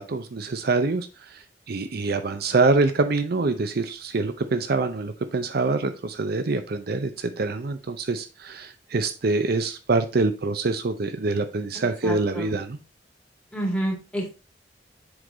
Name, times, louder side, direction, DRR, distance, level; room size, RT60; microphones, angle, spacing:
voice 1, 0.0-12.8, right 3 dB, 55° right, 9 dB, 0.6 m, -25 dB
voice 2, 12.0-12.5 13.5-14.3, right 1 dB, 5° left, -1 dB, 2.1 m, -28 dB
7.9 x 3.8 x 3.8 m, 0.31 s
head